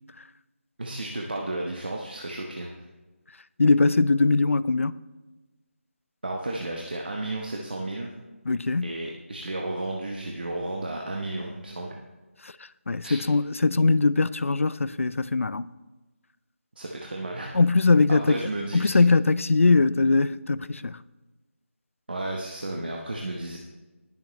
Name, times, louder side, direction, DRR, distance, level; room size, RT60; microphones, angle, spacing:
voice 1, 0.8-2.7 6.2-8.1 8.8-12.0 13.0-13.2 16.8-17.5 18.1-19.0 22.1-23.6, right 2 dB, 45° right, 1.1 m, -33 dB
voice 2, 3.6-5.0 8.5-8.9 12.4-12.5 12.9-15.6 17.5-18.4 18.7-21.0, left 3 dB, 70° left, 0.4 m, -21 dB
19.5 x 7.2 x 3.1 m
figure-of-eight pair, 180°, 7 cm